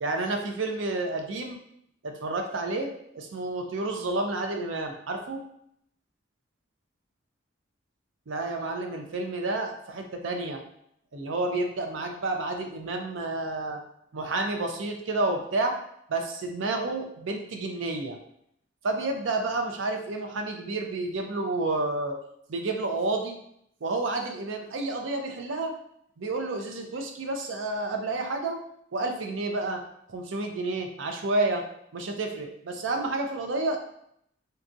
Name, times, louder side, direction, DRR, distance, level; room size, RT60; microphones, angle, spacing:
voice 1, 0.0-1.6 2.0-2.9 3.1-5.4 8.3-10.6 11.1-13.8 14.1-15.8 16.1-18.2 18.8-22.2 22.5-23.4 23.8-25.7 26.2-28.6 28.9-29.8 30.1-31.7 31.9-33.8, right 2 dB, 85° right, 4 dB, 0.5 m, -30 dB
3.9 x 2.3 x 2.6 m, 0.71 s
head